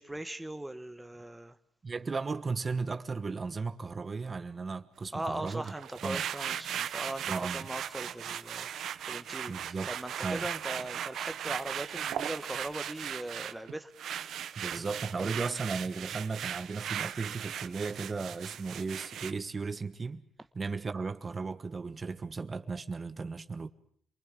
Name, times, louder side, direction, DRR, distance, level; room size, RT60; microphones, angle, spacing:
voice 1, 0.0-1.6 5.1-13.9, right 1 dB, 10° right, 1.2 m, -40 dB
voice 2, 1.8-5.6 6.0-6.2 7.3-7.6 9.5-9.9 10.2-10.4 14.6-20.2 20.5-23.7, right 4 dB, 35° right, 1.3 m, -35 dB
sound 1, 5.5-19.3, right 9 dB, 70° right, 1.1 m, -38 dB
27.5 x 20.0 x 7.5 m
cardioid pair, 90°, 0 cm